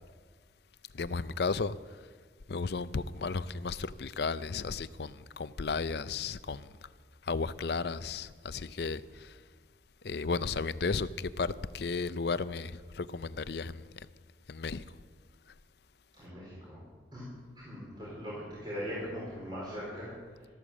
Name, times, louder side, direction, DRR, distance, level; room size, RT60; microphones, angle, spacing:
voice 1, 0.9-1.8 2.5-6.7 7.2-9.4 10.0-13.9 14.5-14.8, left 4 dB, 60° left, 0.5 m, -34 dB
voice 2, 16.2-16.8 17.1-17.2 17.5-20.5, equal, 25° right, 4.2 m, -40 dB
13.0 x 13.0 x 7.3 m
head